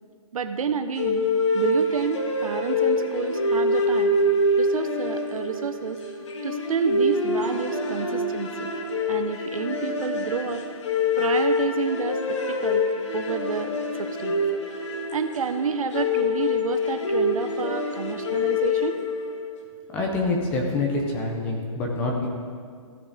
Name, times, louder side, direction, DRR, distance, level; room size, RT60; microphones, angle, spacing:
voice 1, 0.3-1.3 1.5-4.1 4.6-6.0 6.4-8.5 9.1-10.6 11.2-12.8 13.1-13.7 14.0-14.4 15.1-18.9, right 6 dB, 80° right, 9 dB, 0.8 m, -29 dB
sound 1, 1.0-19.5, left 2 dB, 60° left, 1.5 m, -25 dB
voice 2, 19.9-22.3, left 2 dB, 10° left, 0 dB, 0.4 m, -26 dB
15.0 x 6.6 x 3.9 m, 2.1 s
hypercardioid pair, 175°, 18 cm